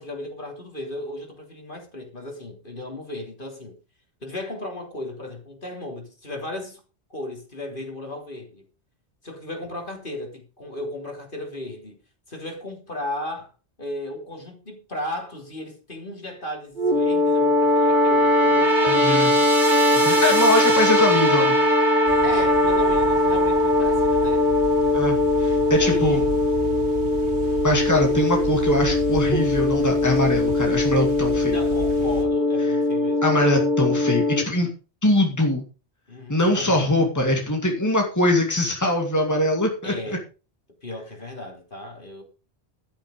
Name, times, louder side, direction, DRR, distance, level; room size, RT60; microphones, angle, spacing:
voice 1, 0.0-3.8 4.2-6.8 7.1-8.7 9.2-12.0 12.3-13.5 13.8-19.6 22.2-24.4 25.7-26.4 31.4-33.3 36.1-36.9 39.8-40.2 40.8-42.2, left 1 dB, 50° left, 3.5 m, -35 dB
sound 1, 16.8-34.4, left 1 dB, 45° right, 2.1 m, -20 dB
voice 2, 18.9-19.3 20.0-21.5 24.9-26.2 27.6-31.6 33.2-34.7 35.0-35.6 36.3-40.2, left 1 dB, 15° left, 2.5 m, -22 dB
sound 2, 22.1-32.3, right 1 dB, 75° right, 2.6 m, -34 dB
12.5 x 8.7 x 5.3 m
omnidirectional pair, 1.2 m